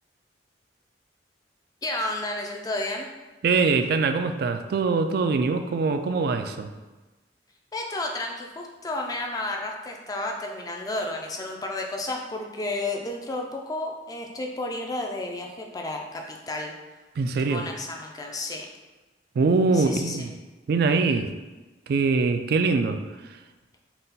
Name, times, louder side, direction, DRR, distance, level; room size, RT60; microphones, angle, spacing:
voice 1, 1.8-3.1 7.7-16.7 17.5-18.7 19.7-20.3, left 2 dB, 20° left, 1 dB, 0.4 m, -32 dB
voice 2, 3.4-6.7 17.2-17.7 19.4-20.3 20.7-21.3 21.9-23.0, right 4 dB, 60° right, 8 dB, 0.3 m, -23 dB
4.0 x 2.3 x 3.9 m, 1.2 s
head